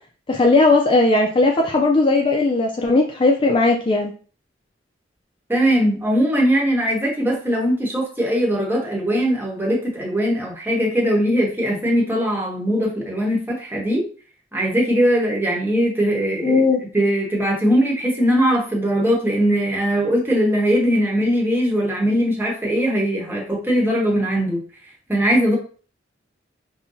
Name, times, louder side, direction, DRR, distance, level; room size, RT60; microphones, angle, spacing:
voice 1, 0.3-4.1 16.4-16.8, left 3 dB, 30° left, 1 dB, 0.4 m, -17 dB
voice 2, 5.5-14.0 14.5-16.7 16.9-24.6 25.1-25.6, equal, 10° right, -2 dB, 1.0 m, -20 dB
5.4 x 2.2 x 2.6 m, 0.40 s
head